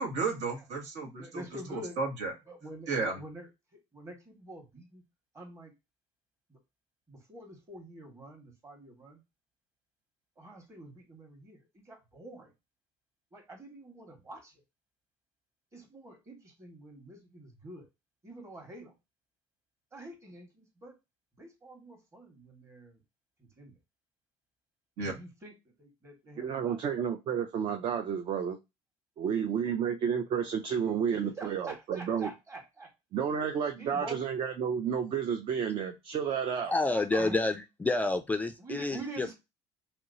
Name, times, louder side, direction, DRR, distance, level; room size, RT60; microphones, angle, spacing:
voice 1, 0.0-1.4 1.7-2.3 2.9-3.2 25.0-25.1, right 4 dB, 75° right, 0 dB, 1.5 m, -33 dB
voice 2, 1.2-2.0 2.5-3.5 3.9-5.0 5.3-5.7 6.5-6.6 7.1-9.2 10.4-12.5 13.3-14.5 15.7-17.9 18.2-18.9 19.9-20.9 21.4-23.0 23.4-23.8 25.0-26.8 31.1-32.9 33.8-34.3 36.8-37.4 38.6-39.3, right 1 dB, 25° right, 2 dB, 1.4 m, -46 dB
voice 3, 26.4-28.6 29.2-32.3 33.1-36.7, right 7 dB, 50° right, 6 dB, 0.5 m, -31 dB
voice 4, 36.6-39.3, left 2 dB, 15° left, 7 dB, 0.3 m, -29 dB
3.1 x 2.9 x 2.6 m, 0.23 s
cardioid pair, 120°, 12 cm